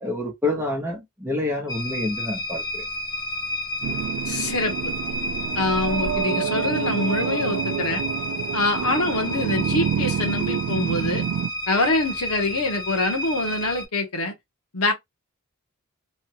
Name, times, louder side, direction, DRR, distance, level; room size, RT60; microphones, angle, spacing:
voice 1, 0.0-2.8, left 2 dB, 10° right, 0.9 m, -27 dB
sound 1, 1.7-13.9, equal, 15° left, 0.5 m, -31 dB
sound 2, 3.8-11.5, right 8 dB, 80° right, 0.3 m, -28 dB
voice 2, 4.3-4.9 5.5-8.0 8.5-11.3 11.7-14.3 14.7-14.9, left 2 dB, 85° left, 1.1 m, -25 dB
3.2 x 2.3 x 2.9 m
head